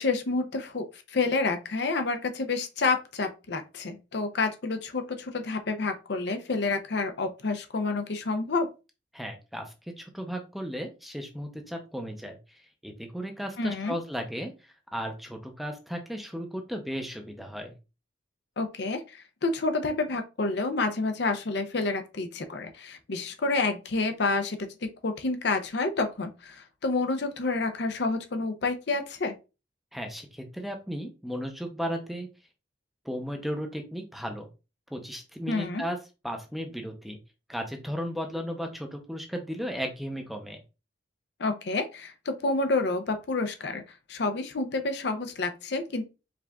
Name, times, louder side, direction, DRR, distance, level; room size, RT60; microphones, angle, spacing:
voice 1, 0.0-8.7 13.6-13.9 18.6-24.7 25.0-29.3 35.5-35.8 41.4-43.8 44.1-46.0, left 3 dB, 60° left, 0.6 m, -29 dB
voice 2, 9.1-12.4 12.8-14.5 14.9-17.7 29.9-32.3 33.0-34.5 34.9-36.0 36.2-37.2 37.5-40.6, equal, ahead, 0.6 m, -35 dB
4.8 x 2.4 x 3.4 m
head